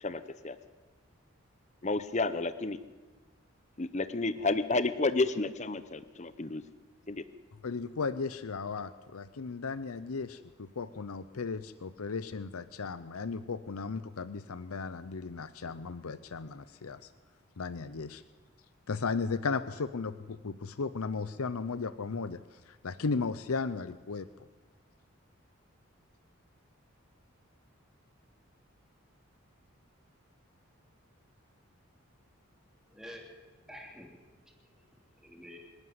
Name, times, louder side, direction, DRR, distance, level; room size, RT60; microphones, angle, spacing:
voice 1, 0.0-0.6 1.8-2.8 3.8-6.6 7.1-7.3, left 3 dB, 30° left, 13 dB, 0.7 m, -31 dB
voice 2, 7.6-17.1 17.6-18.2 18.9-24.3, left 4 dB, 90° left, 13 dB, 0.7 m, -35 dB
voice 3, 32.9-33.3 33.6-34.8 35.2-35.6, equal, ahead, 1 dB, 3.0 m, -49 dB
25.0 x 11.5 x 9.5 m, 1.3 s
head